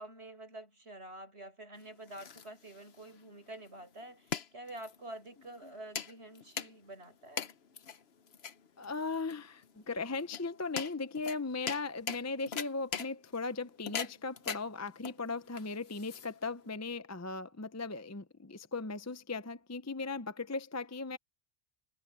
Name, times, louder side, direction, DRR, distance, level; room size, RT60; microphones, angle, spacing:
voice 1, 0.0-7.5, right 1 dB, 80° right, 7.5 m, -48 dB
sound 1, 1.8-16.7, left 7 dB, 70° left, 1.1 m, -42 dB
voice 2, 8.8-21.2, left 3 dB, 20° left, 0.6 m, -38 dB
omnidirectional pair, 1.1 m